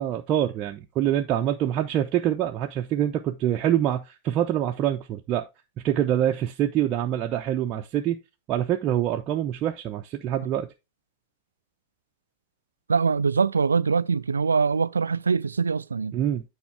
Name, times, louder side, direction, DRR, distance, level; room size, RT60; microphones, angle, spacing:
voice 1, 0.0-5.4 5.8-8.2 8.5-10.7 16.1-16.4, right 11 dB, 35° right, 0.6 m, -25 dB
voice 2, 12.9-16.1, right 5 dB, 75° right, 0.3 m, -23 dB
9.4 x 4.3 x 3.3 m
figure-of-eight pair, 90°, 0 cm